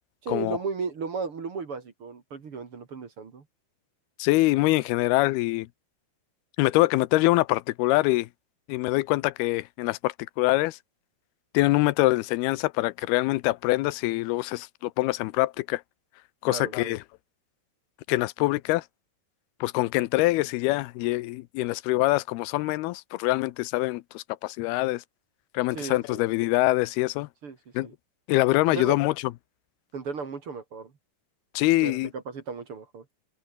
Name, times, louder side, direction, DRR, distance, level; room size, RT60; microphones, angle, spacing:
voice 1, 0.2-3.4 16.5-16.9 25.7-26.4 27.4-27.6 27.8-27.9 28.7-29.0 29.9-30.9 31.8-33.0, right 5 dB, 40° right, 2.7 m, -35 dB
voice 2, 4.2-5.7 6.6-8.3 8.7-10.8 11.5-15.8 16.4-17.0 18.1-18.8 19.6-25.0 25.5-27.3 27.8-27.9 28.3-29.1 31.6-32.1, left 19 dB, 90° left, 2.6 m, -24 dB
omnidirectional pair, 4.5 m